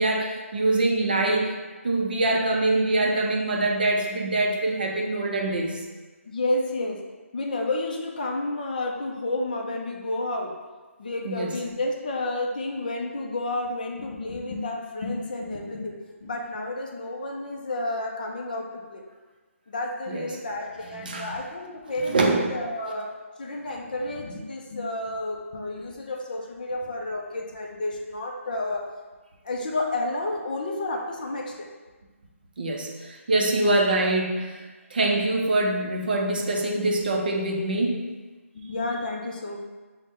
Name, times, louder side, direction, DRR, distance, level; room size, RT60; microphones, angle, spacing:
voice 1, 0.0-1.5 1.8-5.8 11.2-11.5 20.1-20.4 21.0-21.3 22.1-22.5 32.6-38.0, right 2 dB, 40° right, -1 dB, 0.5 m, -24 dB
voice 2, 6.3-7.0 7.3-10.5 11.0-19.0 19.7-28.9 29.4-31.7 33.5-33.8 38.5-39.6, left 2 dB, 35° left, 0 dB, 0.4 m, -31 dB
5.3 x 2.1 x 3.5 m, 1.3 s
hypercardioid pair, 175°, 8 cm